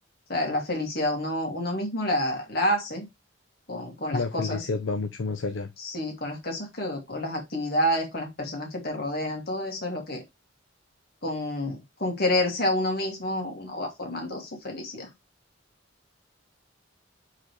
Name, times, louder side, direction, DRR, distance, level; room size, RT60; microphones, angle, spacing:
voice 1, 0.3-3.1 3.7-4.7 5.8-10.2 11.2-15.1, left 1 dB, 55° left, 2.3 m, -29 dB
voice 2, 4.1-5.7, left 3 dB, 70° left, 0.6 m, -29 dB
5.1 x 4.0 x 4.7 m
head